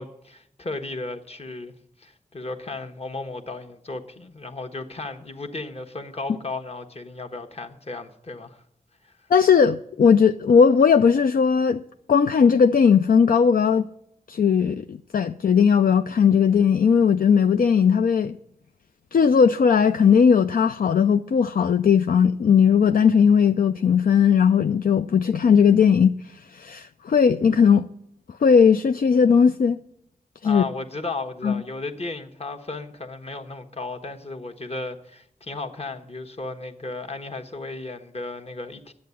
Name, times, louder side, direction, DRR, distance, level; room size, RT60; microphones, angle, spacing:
voice 1, 0.0-1.7 2.0-8.6 9.0-9.2 30.4-38.9, left 3 dB, 40° left, 1.3 m, -35 dB
voice 2, 9.3-11.8 12.1-13.9 14.3-18.4 19.1-26.1 26.5-27.9 28.4-29.8 30.4-30.6 31.4-31.6, left 6 dB, 70° left, 0.4 m, -18 dB
10.5 x 8.5 x 8.2 m
wide cardioid pair, 90°, 15 cm